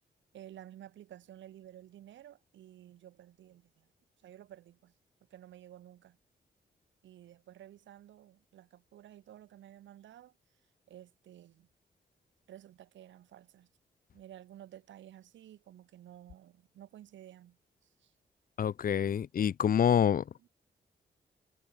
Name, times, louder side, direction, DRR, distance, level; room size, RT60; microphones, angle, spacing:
voice 1, 0.3-3.9 4.2-4.9 5.3-6.2 7.0-10.3 10.9-11.7 12.5-13.7 14.1-18.1 19.1-19.3 20.4-20.5, right 12 dB, 90° right, 1.0 m, -53 dB
voice 2, 18.6-20.2, left 8 dB, 50° left, 0.4 m, -27 dB
cardioid pair, 50°, 19 cm